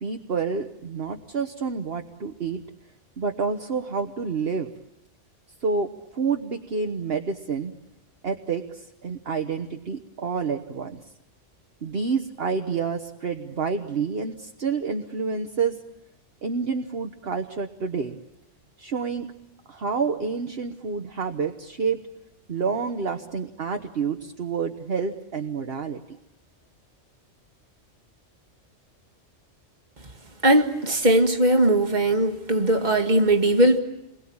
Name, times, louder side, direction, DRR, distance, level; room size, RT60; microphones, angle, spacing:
voice 1, 0.0-2.6 3.2-4.7 5.6-5.9 6.1-7.7 8.2-11.0 11.8-15.8 16.4-18.2 18.8-19.3 19.7-22.0 22.5-26.0, right 5 dB, 55° right, 5 dB, 1.4 m, -28 dB
voice 2, 30.4-33.8, right 1 dB, 35° right, 4 dB, 2.1 m, -19 dB
29.5 x 22.0 x 8.7 m, 0.87 s
omnidirectional pair, 1.3 m